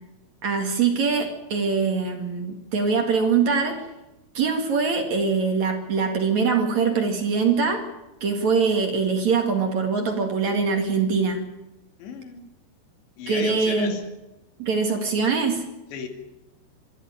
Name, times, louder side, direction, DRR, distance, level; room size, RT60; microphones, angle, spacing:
voice 1, 0.4-3.8 4.3-7.8 8.2-11.4 13.3-14.0 14.6-15.6, right 5 dB, 50° right, 3 dB, 2.8 m, -23 dB
voice 2, 12.0-12.5 13.2-14.1 15.9-16.1, left 7 dB, 80° left, 5 dB, 4.5 m, -35 dB
25.5 x 13.0 x 9.1 m, 0.97 s
omnidirectional pair, 4.9 m